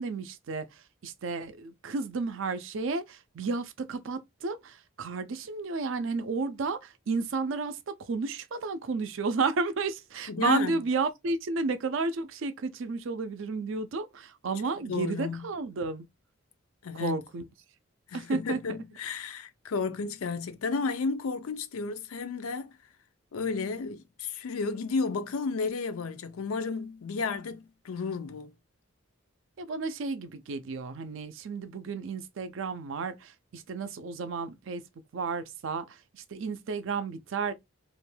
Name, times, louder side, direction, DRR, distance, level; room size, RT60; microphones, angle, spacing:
voice 1, 0.0-16.1 16.9-17.5 18.1-18.6 29.6-34.8 35.1-37.5, right 4 dB, 65° right, 0.4 m, -32 dB
voice 2, 10.3-10.8 14.9-15.4 16.8-17.2 18.1-22.7 23.3-28.5, left 4 dB, 90° left, 0.4 m, -32 dB
2.5 x 2.2 x 3.1 m
head